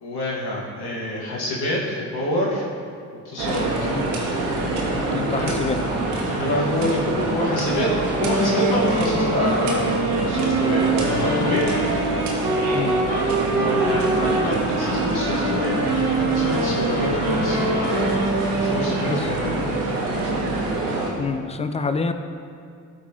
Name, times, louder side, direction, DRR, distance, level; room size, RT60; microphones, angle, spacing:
voice 1, 0.0-2.7 3.2-3.7 5.4-5.5 6.3-10.0 10.3-11.8 13.3-15.8 16.2-20.3, left 1 dB, 60° left, -5 dB, 1.9 m, -27 dB
sound 1, 3.4-21.1, right 2 dB, 75° right, 1.2 m, -25 dB
voice 2, 5.1-5.8 12.7-13.0 18.8-19.6 21.2-22.1, left 4 dB, 15° left, 9 dB, 0.3 m, -27 dB
Wind instrument woodwind instrument, 8.1-19.1, right 2 dB, 60° right, 1.5 m, -25 dB
sound 2, 11.1-12.2 13.1-13.7 14.4-15.2 15.9-18.3, left 5 dB, 85° left, 0.6 m, -40 dB
12.5 x 4.3 x 3.0 m, 2.3 s
hypercardioid pair, 45°, 44 cm